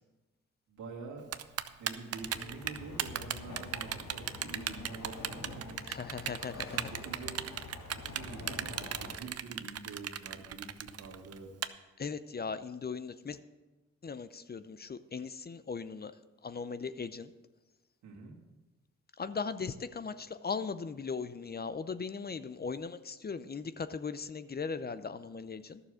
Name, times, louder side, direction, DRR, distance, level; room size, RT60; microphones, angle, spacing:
voice 1, 0.7-1.3 1.8-5.8 6.7-7.4 8.0-10.7 11.0-11.5 11.8-11.9 18.0-18.4, right 4 dB, 85° right, -1 dB, 2.2 m, -46 dB
Typing, 1.3-11.7, right 9 dB, 55° right, 0.6 m, -36 dB
sound 1, 2.2-9.2, left 3 dB, 65° left, 1.9 m, -46 dB
voice 2, 5.9-6.9 12.0-13.4 14.0-16.1 16.4-17.3 19.2-25.8, left 5 dB, 35° left, 13 dB, 0.6 m, -38 dB
11.5 x 7.0 x 6.3 m, 1.2 s
cardioid pair, 60°, 29 cm